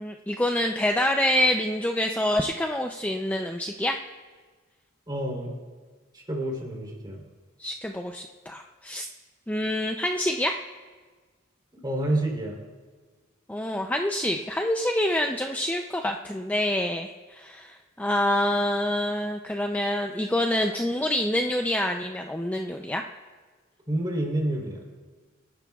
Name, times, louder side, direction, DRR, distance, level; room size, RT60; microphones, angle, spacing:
voice 1, 0.0-4.0 7.6-9.1 9.5-10.6 13.5-23.0, left 1 dB, 10° left, 3 dB, 0.5 m, -26 dB
voice 2, 5.1-5.5 6.1-7.2 11.7-12.6 23.9-24.8, right 1 dB, 20° right, -1 dB, 3.5 m, -29 dB
28.0 x 13.0 x 2.4 m, 1.4 s
head